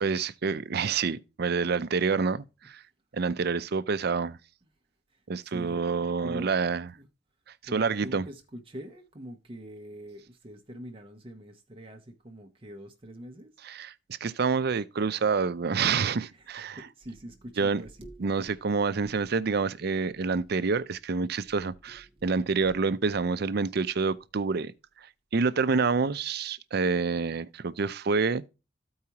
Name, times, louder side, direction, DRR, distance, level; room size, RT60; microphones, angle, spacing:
voice 1, 0.0-2.8 3.1-4.4 5.3-6.9 7.7-8.2 13.6-13.9 14.2-16.8 17.6-17.8 18.2-24.7 25.3-28.4, right 4 dB, 60° right, 0.5 m, -27 dB
voice 2, 5.4-6.6 6.9-7.1 7.6-13.5 16.3-16.5 16.8-18.5 20.4-20.5 21.9-22.5, right 1 dB, 30° right, 0.8 m, -44 dB
14.0 x 4.7 x 2.9 m
head